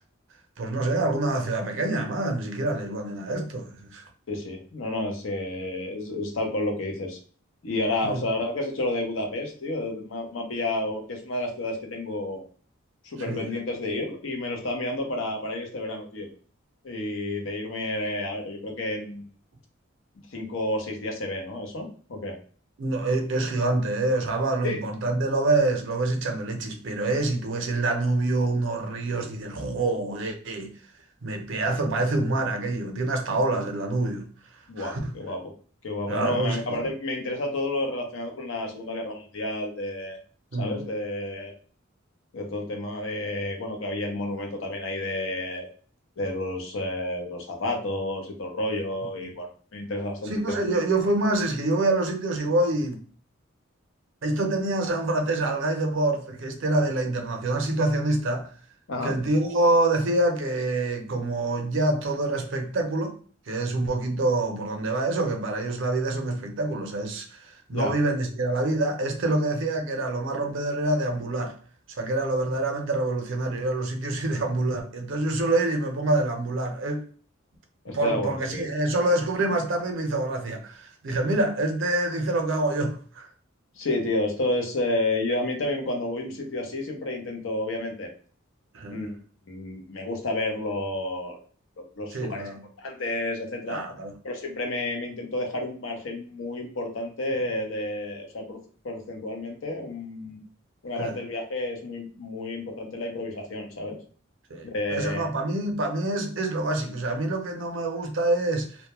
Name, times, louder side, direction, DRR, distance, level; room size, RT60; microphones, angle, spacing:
voice 1, 0.6-4.0 8.0-8.2 13.3-13.5 22.8-30.7 31.2-34.3 34.8-35.1 36.1-36.8 40.5-40.9 49.2-49.3 50.3-53.0 54.2-58.5 59.0-63.2 63.5-71.6 72.0-77.0 77.9-83.3 88.7-89.0 92.1-92.6 93.7-94.1 101.0-101.1 104.5-108.8, right 2 dB, 65° right, 0.5 m, -26 dB
voice 2, 4.3-7.2 7.6-12.4 13.0-16.3 16.8-19.2 20.3-22.4 24.6-24.8 34.7-35.5 35.8-40.2 40.6-41.5 42.3-45.7 46.2-50.6 58.9-59.2 67.7-67.9 77.8-78.6 83.8-88.1 88.9-89.2 89.5-91.4 91.8-93.8 94.2-98.6 98.8-100.4 100.8-104.0 104.6-105.3, left 2 dB, 75° left, 0.6 m, -30 dB
2.1 x 2.1 x 2.8 m
head